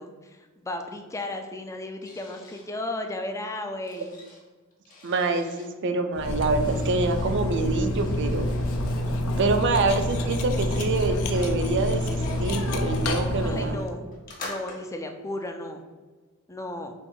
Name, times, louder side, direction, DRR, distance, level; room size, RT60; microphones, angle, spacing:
voice 1, 0.0-4.1 13.4-14.0 14.4-15.8 16.5-16.9, left 1 dB, 15° left, 5 dB, 0.4 m, -34 dB
sound 1, 2.0-2.7 3.4-5.7 6.5-7.4 7.9-9.1 10.1-10.2 10.3-13.1 13.6-15.1, left 2 dB, 40° left, 1.0 m, -46 dB
voice 2, 5.0-8.5 9.4-13.8, right 3 dB, 55° right, 7 dB, 0.4 m, -26 dB
Cutlery silverware, 6.1-13.9, left 1 dB, 75° left, 0.5 m, -27 dB
4.2 x 2.5 x 4.7 m, 1.3 s
head